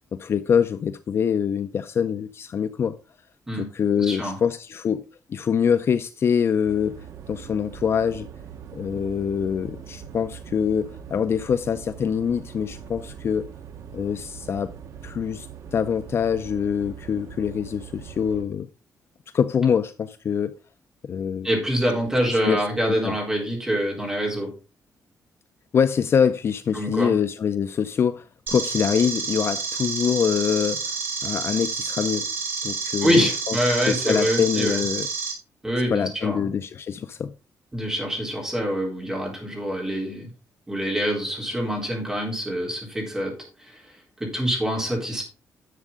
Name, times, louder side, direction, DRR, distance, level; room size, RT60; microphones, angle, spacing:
voice 1, 0.1-3.0 3.5-8.3 8.7-13.5 13.9-14.7 15.0-18.7 19.3-20.5 21.0-21.5 22.4-23.2 25.7-30.8 31.2-32.3 32.6-33.6 33.9-35.1 35.9-37.3, left 7 dB, 45° left, 0.5 m, -24 dB
voice 2, 4.0-4.4 21.4-24.5 26.7-27.1 33.0-34.8 35.6-36.4 37.7-40.3 40.7-43.3 43.6-43.9 44.2-45.2, equal, 10° right, 3.8 m, -25 dB
sound 1, 6.7-18.4, right 8 dB, 65° right, 1.1 m, -41 dB
sound 2, 28.5-35.3, right 5 dB, 35° right, 4.4 m, -29 dB
11.0 x 7.3 x 3.7 m
wide cardioid pair, 170°, 6 cm